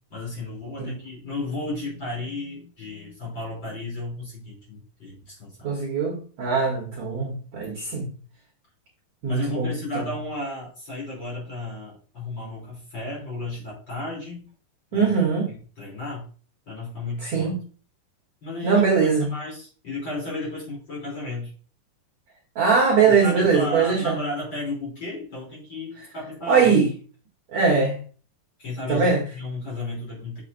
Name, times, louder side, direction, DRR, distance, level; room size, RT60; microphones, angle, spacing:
voice 1, 0.1-5.7 9.3-14.5 14.9-15.1 15.8-16.3 16.7-17.5 18.4-18.8 19.2-21.5 23.0-26.7 28.6-30.4, left 2 dB, 30° left, 3.4 m, -33 dB
voice 2, 5.6-8.1 9.2-10.1 14.9-15.5 17.2-17.6 18.6-19.3 22.6-24.1 26.5-26.9 27.5-28.0 28.9-29.2, right 5 dB, 60° right, 2.0 m, -21 dB
7.4 x 6.7 x 2.6 m
omnidirectional pair, 4.8 m